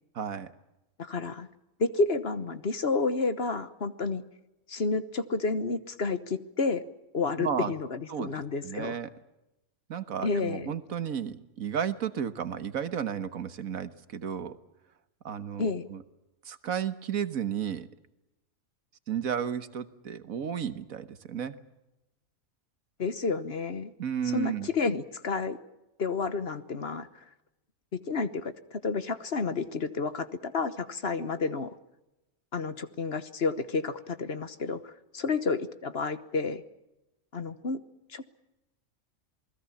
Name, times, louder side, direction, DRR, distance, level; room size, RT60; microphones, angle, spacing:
voice 1, 0.2-0.5 7.4-7.7 8.1-9.1 9.9-14.6 15.3-16.0 16.5-17.9 19.1-21.6 24.0-24.7, right 8 dB, 80° right, 11 dB, 1.7 m, -33 dB
voice 2, 1.0-1.5 1.8-4.2 4.7-6.8 7.1-8.9 10.2-10.7 15.6-15.9 23.0-23.9 24.2-25.6 26.0-27.2 27.9-31.8 32.5-36.6 37.3-37.8 38.1-38.2, left 4 dB, 50° left, 12 dB, 1.3 m, -30 dB
28.0 x 20.0 x 7.2 m, 0.94 s
omnidirectional pair, 1.5 m